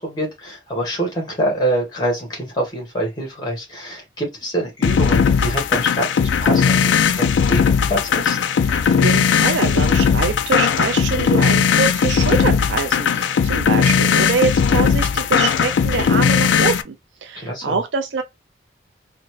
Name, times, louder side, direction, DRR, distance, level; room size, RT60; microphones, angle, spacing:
voice 1, 0.0-8.4 17.4-17.8, right 1 dB, 20° left, 1.5 m, -25 dB
sound 1, 4.8-16.8, left 6 dB, 75° left, 0.4 m, -17 dB
voice 2, 8.7-16.9 17.2-18.2, right 5 dB, 75° right, 0.4 m, -24 dB
3.9 x 2.2 x 3.1 m
head